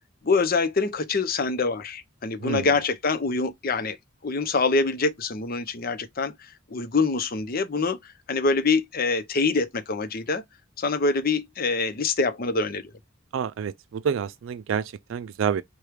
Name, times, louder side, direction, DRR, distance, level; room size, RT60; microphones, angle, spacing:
voice 1, 0.2-4.0 4.2-10.4 10.8-12.9, left 4 dB, 45° left, 0.7 m, -25 dB
voice 2, 2.4-2.7 13.3-15.6, right 7 dB, 70° right, 0.3 m, -28 dB
5.0 x 2.3 x 4.6 m
head